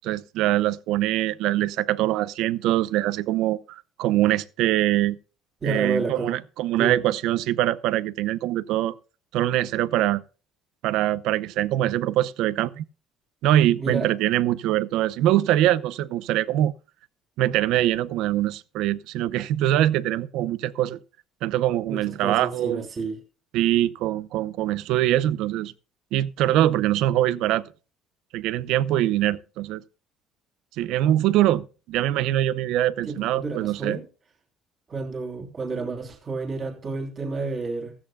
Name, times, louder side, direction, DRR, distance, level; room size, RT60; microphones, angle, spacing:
voice 1, 0.0-5.2 5.6-8.9 9.3-10.2 10.8-12.8 13.4-16.7 17.4-21.0 21.4-22.9 23.5-25.7 26.1-27.6 28.3-29.8 30.8-34.0, right 13 dB, 75° right, 0.7 m, -23 dB
voice 2, 5.6-6.3 6.8-6.9 13.8-14.1 21.9-23.2 33.0-34.1 34.9-37.9, right 3 dB, 35° right, 3.2 m, -30 dB
15.5 x 14.0 x 2.2 m
cardioid pair, 115°, 0 cm